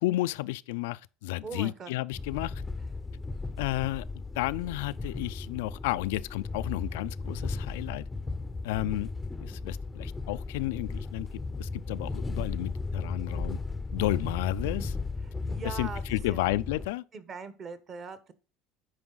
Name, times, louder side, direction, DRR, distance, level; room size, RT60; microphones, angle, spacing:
voice 1, 0.0-2.6 3.6-8.0 8.6-9.1 9.4-13.6 13.9-15.0 15.6-17.0, left 17 dB, 90° left, 0.3 m, -32 dB
voice 2, 1.4-1.9 15.4-16.0 16.3-16.4 17.1-18.3, right 5 dB, 35° right, 1.0 m, -40 dB
sound 1, 2.1-16.9, left 3 dB, 10° left, 0.5 m, -36 dB
9.5 x 4.7 x 3.9 m
cardioid pair, 135°, 0 cm